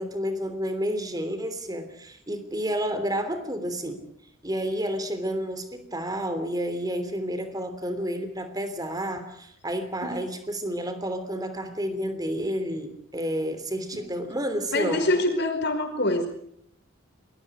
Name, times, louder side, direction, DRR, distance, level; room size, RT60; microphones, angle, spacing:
voice 1, 0.0-4.1 4.4-15.1, equal, 20° right, 10 dB, 3.1 m, -30 dB
voice 2, 14.7-16.3, left 2 dB, 55° left, 6 dB, 5.2 m, -25 dB
28.0 x 21.0 x 5.0 m, 0.68 s
head